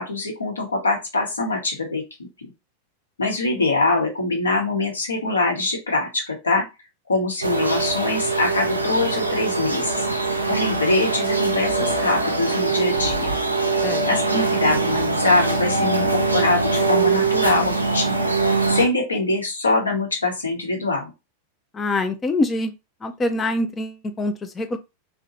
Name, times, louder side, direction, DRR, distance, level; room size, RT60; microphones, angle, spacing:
voice 1, 0.0-2.0 3.2-6.6 7.1-10.0 10.5-13.3 14.1-18.2 18.7-21.1, left 2 dB, 75° left, 0.8 m, -23 dB
sound 1, 7.4-18.9, right 3 dB, 85° right, 0.4 m, -22 dB
voice 2, 21.7-22.7 23.0-24.8, left 2 dB, 20° left, 0.4 m, -25 dB
2.7 x 2.1 x 2.6 m
figure-of-eight pair, 90°, 0 cm